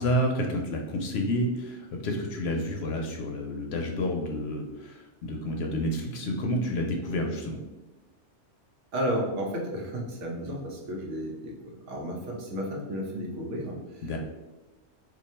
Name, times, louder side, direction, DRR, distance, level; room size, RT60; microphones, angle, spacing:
voice 1, 0.0-7.6 14.0-14.2, equal, 65° left, 1 dB, 0.8 m, -29 dB
voice 2, 8.9-11.5 11.9-14.1, equal, 75° right, 0 dB, 1.1 m, -32 dB
3.0 x 2.4 x 4.2 m, 1.1 s
omnidirectional pair, 1.2 m